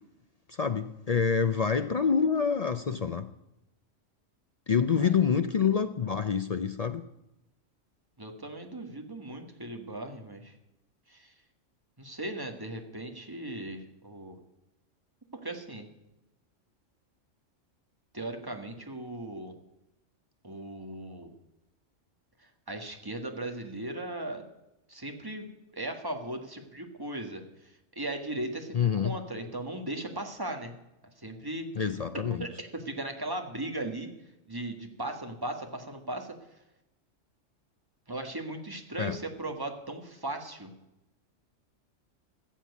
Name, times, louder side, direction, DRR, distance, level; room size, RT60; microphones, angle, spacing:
voice 1, 0.5-3.3 4.7-7.0 28.7-29.1 31.8-32.5 39.0-39.2, left 6 dB, 55° left, 0.4 m, -27 dB
voice 2, 8.2-10.5 11.1-11.3 12.0-14.4 15.4-15.9 18.1-19.5 20.4-21.3 22.4-24.4 24.9-25.5 25.7-30.7 31.2-31.7 32.1-34.1 34.5-36.3 38.1-40.7, right 1 dB, 20° right, 1.5 m, -37 dB
14.5 x 7.4 x 8.2 m
omnidirectional pair, 1.3 m